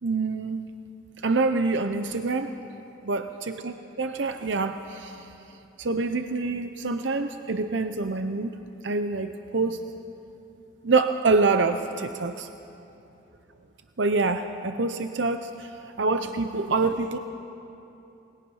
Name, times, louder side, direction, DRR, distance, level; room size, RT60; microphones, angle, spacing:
voice 1, 0.0-0.6 1.2-2.5 3.0-5.3 5.8-8.5 8.8-9.8 10.8-12.5 14.0-15.7 16.0-17.2, right 3 dB, 70° right, 8 dB, 0.8 m, -26 dB
28.0 x 20.0 x 5.6 m, 2.9 s
head